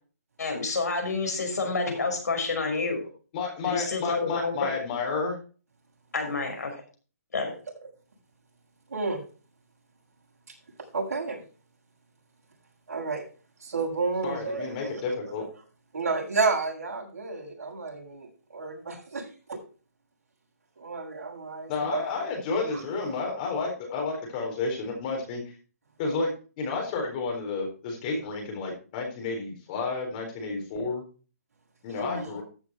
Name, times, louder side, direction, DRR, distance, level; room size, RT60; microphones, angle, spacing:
voice 1, 0.4-3.0 3.6-4.7 6.1-6.7 7.3-7.5, left 3 dB, 75° left, 3 dB, 5.8 m, -28 dB
voice 2, 3.3-5.4 14.2-15.4 21.7-25.4 26.0-31.0 31.8-32.4, left 4 dB, 30° left, 1 dB, 4.2 m, -31 dB
voice 3, 8.9-9.2 10.5-10.6 10.9-11.4 12.9-13.2 13.6-14.9 15.9-19.6 20.8-22.2 22.7-22.8 32.0-32.3, right 4 dB, 60° right, -4 dB, 6.9 m, -31 dB
14.0 x 6.8 x 4.3 m, 0.36 s
hypercardioid pair, 155°, 9 cm